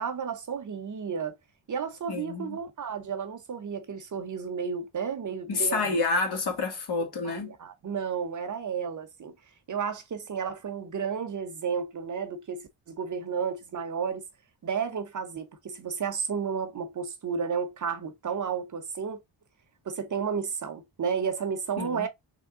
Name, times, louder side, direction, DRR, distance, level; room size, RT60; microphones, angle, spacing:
voice 1, 0.0-1.3 1.7-6.0 7.2-9.3 9.7-14.2 14.6-19.2 19.9-22.1, right 6 dB, 40° right, 0.9 m, -32 dB
voice 2, 2.1-2.6 5.5-7.5 21.8-22.1, left 3 dB, 55° left, 2.0 m, -29 dB
3.6 x 3.5 x 3.7 m
cardioid pair, 125°, 45 cm